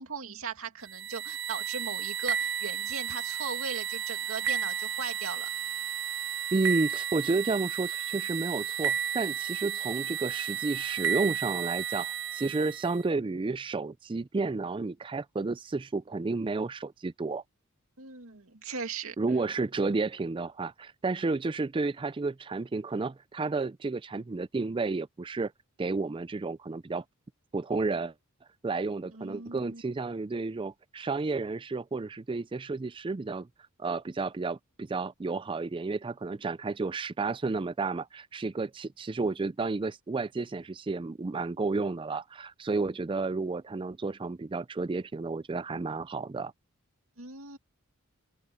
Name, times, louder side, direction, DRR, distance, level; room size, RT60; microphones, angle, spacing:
voice 1, 0.0-5.5 18.0-19.1 29.1-29.8 47.2-47.6, right 4 dB, 75° right, 2.4 m, -38 dB
sound 1, 0.9-13.0, right 8 dB, 60° right, 1.4 m, -33 dB
voice 2, 6.5-17.4 19.2-25.5 25.8-27.0 27.5-28.1 28.6-33.5 33.8-46.5, right 3 dB, 25° right, 0.4 m, -31 dB
open air
head